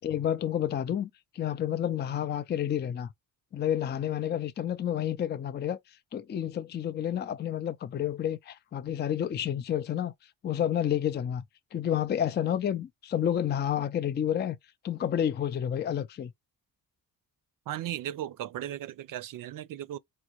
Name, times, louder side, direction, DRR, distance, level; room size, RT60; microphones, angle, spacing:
voice 1, 0.0-1.1 1.3-3.1 3.5-5.8 6.1-10.1 10.4-11.4 11.7-14.6 14.8-16.3, left 10 dB, 30° left, 0.4 m, -30 dB
voice 2, 17.7-20.0, right 12 dB, 70° right, 0.5 m, -36 dB
3.6 x 2.1 x 2.9 m
cardioid pair, 125°, 34 cm